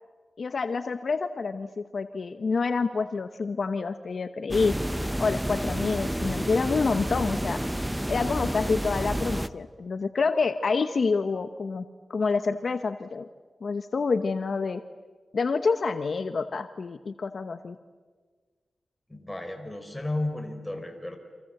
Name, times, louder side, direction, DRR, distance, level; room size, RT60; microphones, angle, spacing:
voice 1, 0.4-4.8 5.2-7.6 8.1-11.8 12.1-13.3 13.6-14.8 15.3-17.8, left 4 dB, 55° left, 10 dB, 0.9 m, -27 dB
sound 1, 4.5-9.5, equal, 5° right, 0.7 m, -30 dB
voice 2, 19.1-21.2, left 2 dB, 10° left, 4 dB, 4.5 m, -33 dB
29.5 x 26.0 x 7.8 m, 1.5 s
wide cardioid pair, 105°, 0 cm